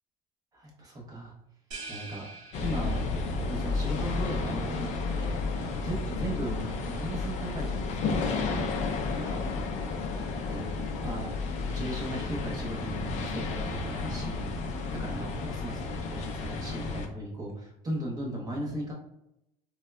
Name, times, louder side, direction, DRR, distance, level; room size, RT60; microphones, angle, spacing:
voice 1, 0.5-1.3 1.9-2.3 2.6-3.0 3.4-5.4 5.8-8.3 9.1-9.4 10.4-11.3 11.6-14.5 14.9-18.9, right 1 dB, 25° right, -2 dB, 0.9 m, -37 dB
sound 1, 1.7-3.4, right 3 dB, 55° right, 1.0 m, -44 dB
sound 2, 2.5-17.1, left 3 dB, 50° left, 0.4 m, -32 dB
3.5 x 2.2 x 2.2 m, 0.83 s
cardioid pair, 140°, 16 cm